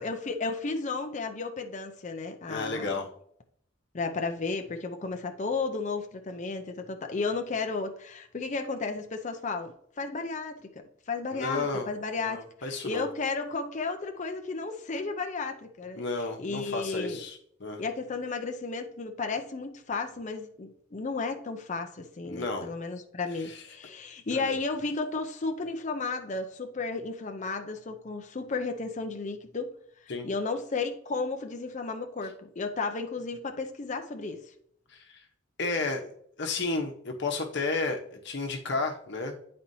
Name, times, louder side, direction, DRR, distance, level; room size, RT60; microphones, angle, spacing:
voice 1, 0.0-3.0 3.9-10.7 11.1-16.0 16.4-17.2 17.8-29.7 30.0-34.4, left 4 dB, 35° left, 0.5 m, -33 dB
voice 2, 2.5-3.1 11.3-11.9 12.2-13.0 16.0-17.8 22.2-22.7 23.4-23.6 24.3-24.5 30.1-30.3 34.9-35.2 35.6-36.1 36.4-39.4, left 3 dB, 55° left, 1.0 m, -32 dB
9.1 x 4.3 x 2.7 m
head